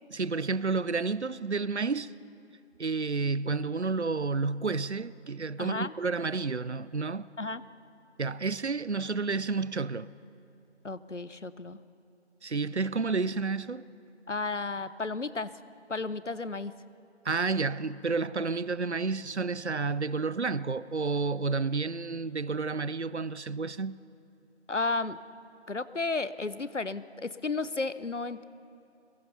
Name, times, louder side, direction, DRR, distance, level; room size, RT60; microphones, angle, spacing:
voice 1, 0.1-2.1 2.8-7.3 8.2-10.1 12.4-13.9 17.2-24.0, right 4 dB, 70° right, 0.7 m, -30 dB
voice 2, 5.6-5.9 7.4-7.6 10.8-11.8 14.3-15.5 15.9-16.7 24.7-25.2 25.7-28.4, left 3 dB, 90° left, 1.0 m, -33 dB
26.0 x 22.0 x 5.7 m
figure-of-eight pair, 175°, 35 cm